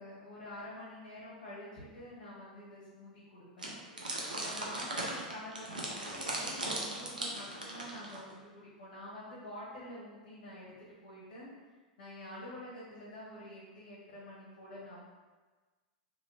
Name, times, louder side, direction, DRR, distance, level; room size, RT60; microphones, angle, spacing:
voice 1, 0.0-3.8 4.3-11.5 12.0-15.0, left 1 dB, 55° left, -8 dB, 1.0 m, -47 dB
sound 1, 3.6-8.3, right 2 dB, 80° right, 0.5 m, -38 dB
2.8 x 2.7 x 2.7 m, 1.3 s
figure-of-eight pair, 90°, 4 cm